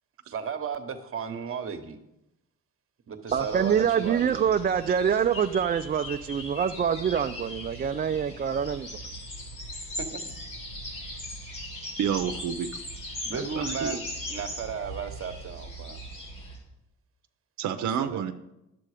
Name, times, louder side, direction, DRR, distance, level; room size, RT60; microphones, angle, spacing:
voice 1, 0.3-2.0 3.1-4.5 10.0-10.2 13.3-14.0 14.3-16.0 17.8-18.2, right 6 dB, 45° right, 8 dB, 1.2 m, -34 dB
sound 1, 3.3-16.6, left 1 dB, 90° left, 3.3 m, -39 dB
voice 2, 3.3-8.9, right 7 dB, 30° right, 8 dB, 0.4 m, -25 dB
voice 3, 12.0-12.7 13.3-14.0 17.6-18.3, right 8 dB, 70° right, 8 dB, 0.7 m, -29 dB
10.5 x 7.7 x 4.9 m, 0.89 s
cardioid pair, 90°, 30 cm